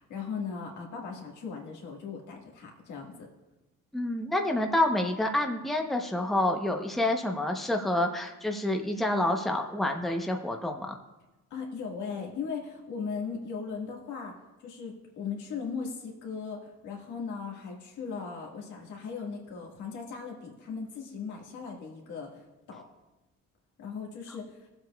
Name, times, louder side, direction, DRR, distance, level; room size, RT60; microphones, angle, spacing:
voice 1, 0.0-3.3 11.5-14.3 14.6-22.8 23.8-24.7, left 5 dB, 75° left, -1 dB, 1.8 m, -38 dB
voice 2, 3.9-11.0, left 1 dB, ahead, 3 dB, 0.8 m, -28 dB
17.0 x 7.8 x 2.3 m, 1.0 s
cardioid pair, 90°, 30 cm